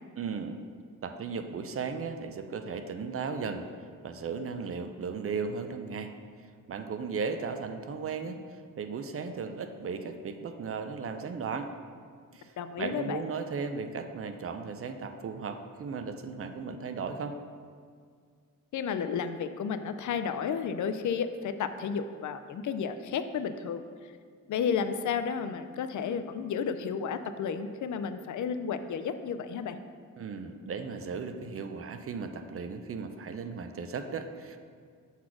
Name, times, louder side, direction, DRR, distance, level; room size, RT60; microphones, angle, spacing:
voice 1, 0.2-0.6 1.0-3.7 4.0-6.1 6.7-11.7 12.3-17.4 30.2-34.6, right 5 dB, 40° right, 7 dB, 0.5 m, -36 dB
voice 2, 12.6-13.2 18.7-23.8 24.5-29.8, left 6 dB, 60° left, 10 dB, 0.5 m, -32 dB
6.3 x 4.1 x 5.9 m, 2.1 s
cardioid pair, 115°, 33 cm